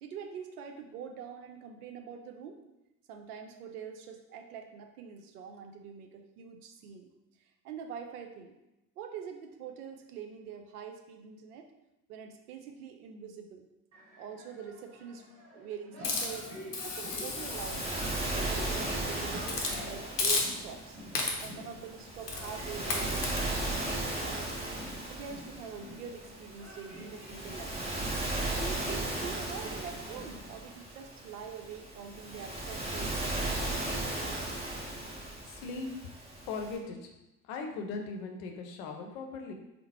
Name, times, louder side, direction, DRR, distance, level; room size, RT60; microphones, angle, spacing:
voice 1, 0.0-2.6 3.1-7.1 7.4-8.5 9.0-11.7 12.1-13.6 14.2-16.5 16.8-21.0 21.4-23.7 24.2-24.8 25.1-28.1 28.6-33.8, right 7 dB, 75° right, 5 dB, 0.6 m, -45 dB
sound 1, 13.9-30.8, equal, 35° right, 1.4 m, -48 dB
Hiss, 16.0-18.9 19.4-19.8 20.2-20.8 21.1-21.6 22.3-22.5 22.9-23.4, left 3 dB, 90° left, 0.6 m, -34 dB
Waves surf, 16.8-36.8, right 2 dB, 15° right, 1.0 m, -36 dB
voice 2, 34.8-36.1 36.4-37.1 37.4-39.5, left 4 dB, 55° left, 3 dB, 0.7 m, -39 dB
3.8 x 2.0 x 4.2 m, 0.94 s
figure-of-eight pair, 60°, 46 cm